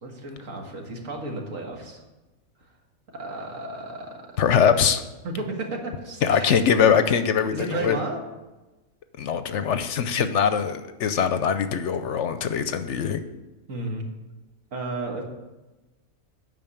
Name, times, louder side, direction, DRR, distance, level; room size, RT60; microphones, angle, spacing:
voice 1, 0.0-2.0 3.1-4.1 5.2-6.6 7.5-8.2 13.7-14.1 14.7-15.2, right 2 dB, 75° right, 1 dB, 2.0 m, -33 dB
voice 2, 4.4-5.0 6.2-8.0 9.2-13.2, left 7 dB, 65° left, 10 dB, 0.9 m, -22 dB
9.0 x 5.5 x 6.9 m, 1.1 s
omnidirectional pair, 1.4 m